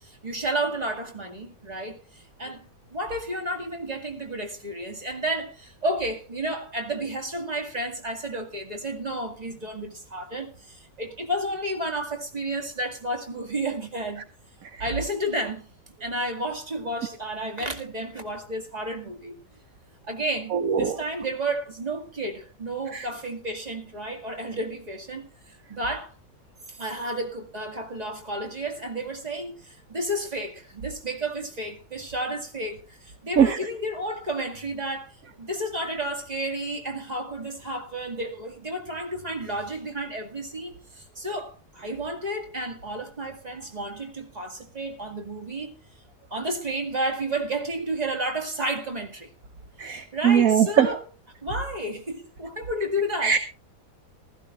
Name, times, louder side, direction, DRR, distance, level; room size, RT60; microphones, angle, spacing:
voice 1, 0.0-2.0 2.4-14.2 14.8-15.7 16.0-19.4 20.0-26.1 26.7-45.7 46.3-49.3 49.8-51.0 51.4-53.4, right 1 dB, 25° right, 2.2 m, -31 dB
voice 2, 20.5-20.9 22.9-23.0 33.4-33.6 49.8-50.9 53.2-53.4, right 8 dB, 60° right, 1.2 m, -20 dB
15.5 x 14.5 x 3.1 m
omnidirectional pair, 1.9 m